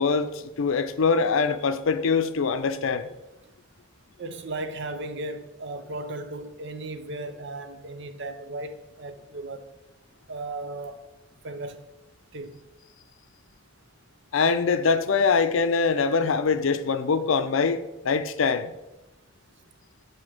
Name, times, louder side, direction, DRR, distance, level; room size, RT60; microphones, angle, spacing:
voice 1, 0.0-3.1 14.3-18.7, left 5 dB, 75° left, 0.5 m, -23 dB
voice 2, 4.2-9.7 10.3-11.0 11.4-11.8 12.3-12.6, right 2 dB, 65° right, 0.7 m, -36 dB
11.0 x 4.5 x 3.4 m
head